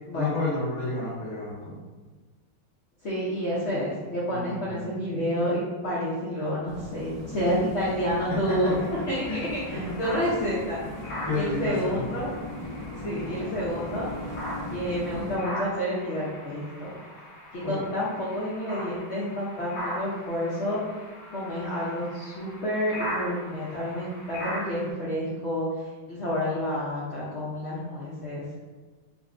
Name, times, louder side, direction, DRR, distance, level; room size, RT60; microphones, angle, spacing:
voice 1, 0.1-1.5 4.3-4.9 9.3-9.4 11.2-12.0 17.6-17.8, left 3 dB, 20° left, -9 dB, 1.2 m, -30 dB
voice 2, 3.0-8.8 9.1-10.8 11.3-12.3 13.0-14.1 14.7-16.9 17.5-20.8 21.3-28.7, equal, 60° left, -8 dB, 0.7 m, -29 dB
sound 1, 6.7-15.4, left 1 dB, 70° right, 1.3 m, -38 dB
sound 2, 8.7-24.9, equal, 90° left, 1.6 m, -40 dB
4.8 x 2.1 x 2.5 m, 1.3 s
omnidirectional pair, 1.8 m